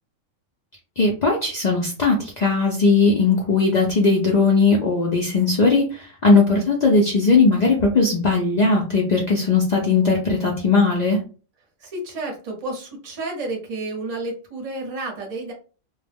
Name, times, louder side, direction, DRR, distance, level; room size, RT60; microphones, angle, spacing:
voice 1, 1.0-11.2, left 3 dB, 90° left, -1 dB, 0.3 m, -18 dB
voice 2, 11.8-15.5, right 2 dB, 40° right, 1 dB, 0.7 m, -31 dB
2.2 x 2.0 x 3.3 m, 0.37 s
omnidirectional pair, 1.3 m